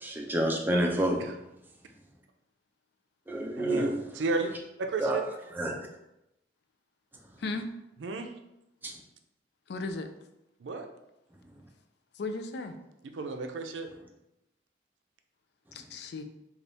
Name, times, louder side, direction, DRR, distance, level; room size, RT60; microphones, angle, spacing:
voice 1, 0.0-1.2 3.3-3.9 5.0-5.2 5.6-5.8 8.8-8.9, right 1 dB, 10° right, 1 dB, 0.5 m, -28 dB
voice 2, 3.6-5.2 8.0-8.3 10.6-10.9 13.1-13.9, right 3 dB, 85° right, 6 dB, 0.4 m, -33 dB
voice 3, 9.7-10.1 12.2-12.8 15.7-16.2, left 3 dB, 65° left, 7 dB, 0.4 m, -35 dB
3.4 x 2.4 x 3.9 m, 0.87 s
head